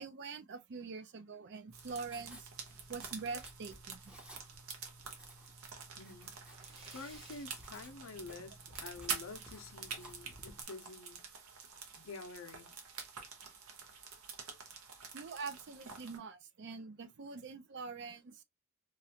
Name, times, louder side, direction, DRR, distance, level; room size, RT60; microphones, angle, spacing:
voice 1, 0.0-2.5 2.9-4.0 15.1-18.4, right 4 dB, 55° right, 0.5 m, -44 dB
Writing, 1.7-10.6, right 1 dB, 5° right, 0.6 m, -56 dB
sound 1, 1.7-16.2, right 5 dB, 80° right, 0.9 m, -47 dB
voice 2, 6.0-6.3 6.9-11.2 12.0-12.7, left 3 dB, 75° left, 0.6 m, -49 dB
Splash splatter, 6.4-8.7 9.0-9.2 9.6-9.7 11.2-11.3 11.6-11.7 12.3-12.6, right 2 dB, 30° right, 1.0 m, -57 dB
3.1 x 2.4 x 2.7 m
head